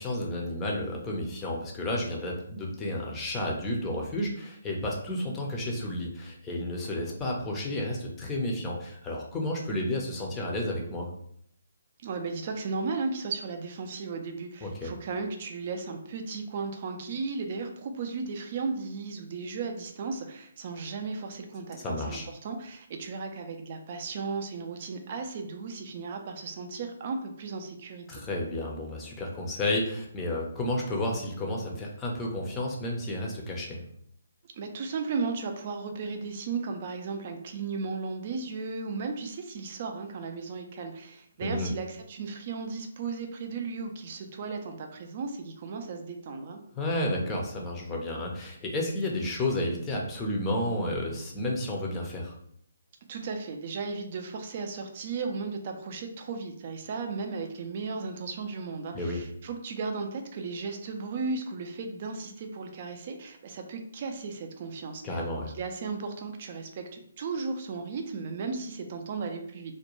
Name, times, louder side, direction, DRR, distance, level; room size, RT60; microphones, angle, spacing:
voice 1, 0.0-11.1 14.6-14.9 21.8-22.3 28.1-33.8 41.4-41.7 46.8-52.3 58.9-59.2 65.0-65.6, left 1 dB, 15° left, -1 dB, 0.5 m, -31 dB
voice 2, 12.0-28.2 34.5-46.6 53.1-65.2 65.5-69.7, right 4 dB, 40° right, 4 dB, 0.4 m, -35 dB
2.5 x 2.1 x 3.0 m, 0.68 s
hypercardioid pair, 150°, 0 cm